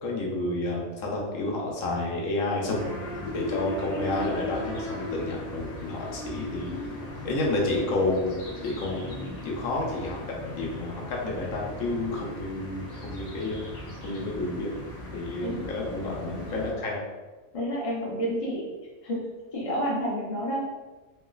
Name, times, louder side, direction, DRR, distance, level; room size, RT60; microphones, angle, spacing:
voice 1, 0.0-6.7 7.2-13.6 14.0-14.7 15.1-17.0, left 2 dB, 80° left, -2 dB, 1.1 m, -30 dB
sound 1, 2.7-16.7, left 2 dB, 60° left, 1.0 m, -38 dB
voice 2, 17.5-18.7 19.0-19.2 19.5-20.6, equal, 30° left, -5 dB, 0.7 m, -29 dB
3.2 x 2.9 x 2.3 m, 1.2 s
omnidirectional pair, 1.4 m